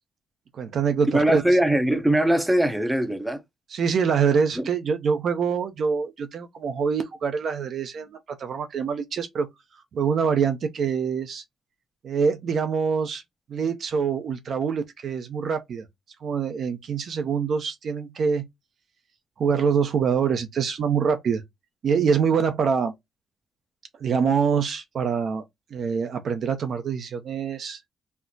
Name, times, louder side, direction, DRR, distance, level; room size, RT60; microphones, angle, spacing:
voice 1, 0.5-1.4 3.7-9.5 9.9-11.4 12.0-13.2 13.5-15.9 16.2-18.5 19.4-21.4 21.8-22.9 24.0-25.4 25.7-27.8, right 6 dB, 60° right, 0.6 m, -25 dB
voice 2, 1.1-3.4 4.6-4.7, right 1 dB, 5° right, 0.7 m, -21 dB
4.2 x 2.1 x 2.6 m
cardioid pair, 90°, 0 cm